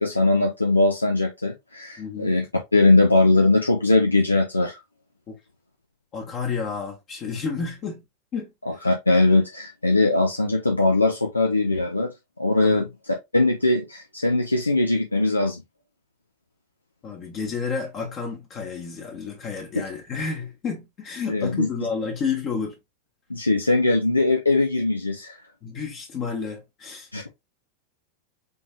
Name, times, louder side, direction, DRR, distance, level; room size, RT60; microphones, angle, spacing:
voice 1, 0.0-2.4 2.7-4.8 8.7-12.1 12.4-12.8 13.3-15.6 21.3-21.7 23.3-25.3 27.1-27.3, left 2 dB, 80° left, 0.6 m, -20 dB
voice 2, 2.0-2.3 5.3-5.4 6.1-8.0 8.3-8.8 12.6-12.9 17.0-22.7 25.6-27.1, left 5 dB, 30° left, 1.1 m, -31 dB
5.2 x 3.1 x 2.3 m
figure-of-eight pair, 90°, 0 cm